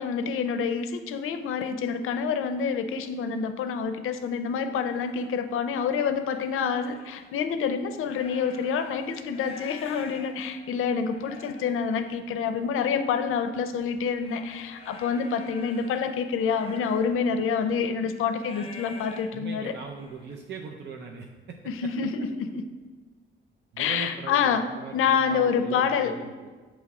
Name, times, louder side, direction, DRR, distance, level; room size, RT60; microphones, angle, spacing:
voice 1, 0.0-19.7 21.7-22.6 23.8-24.6 24.9-26.1, left 6 dB, 85° left, 9 dB, 0.5 m, -27 dB
sound 1, 3.1-3.3 3.9-4.0 4.5-5.3 5.8-7.3 7.9-20.4, left 3 dB, 30° left, 0.5 m, -48 dB
voice 2, 19.3-21.6 23.7-26.5, right 5 dB, 55° right, 1 dB, 0.5 m, -40 dB
7.0 x 3.1 x 4.7 m, 1.4 s
wide cardioid pair, 175°, 21 cm